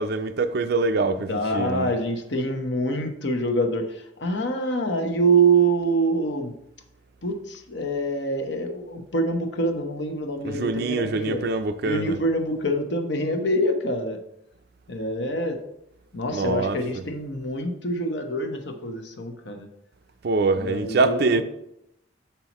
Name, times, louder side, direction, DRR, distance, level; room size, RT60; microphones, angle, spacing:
voice 1, 0.0-1.9 10.4-12.2 16.3-17.0 20.2-21.4, right 3 dB, 50° right, 0.4 m, -24 dB
voice 2, 1.3-6.5 7.2-11.4 11.8-14.2 14.9-15.6 16.1-19.7 20.6-21.4, right 2 dB, 60° left, 0.9 m, -25 dB
6.9 x 5.6 x 3.0 m
head